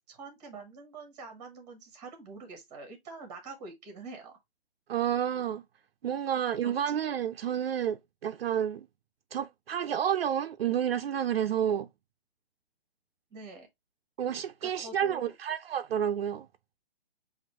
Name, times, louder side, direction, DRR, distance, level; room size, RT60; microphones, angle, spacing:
voice 1, 0.1-4.3 6.6-7.0 13.3-13.7 14.6-15.3, right 3 dB, 10° right, 1.0 m, -46 dB
voice 2, 4.9-5.6 6.0-8.9 9.3-11.9 14.2-16.5, right 9 dB, 70° right, 0.5 m, -30 dB
6.0 x 2.6 x 2.9 m
hypercardioid pair, 165°, 31 cm